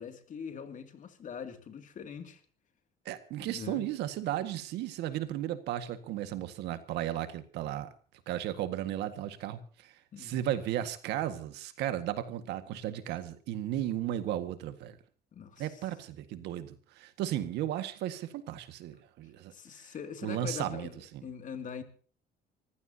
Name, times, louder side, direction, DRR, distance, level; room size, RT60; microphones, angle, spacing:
voice 1, 0.0-2.4 3.4-3.9 10.1-10.4 15.3-15.9 19.5-21.8, left 7 dB, 50° left, 2.6 m, -43 dB
voice 2, 3.1-7.9 8.3-9.9 10.2-15.0 15.6-19.5 20.2-20.9, right 12 dB, 85° right, 1.8 m, -35 dB
25.5 x 15.0 x 2.9 m
cardioid pair, 110°, 17 cm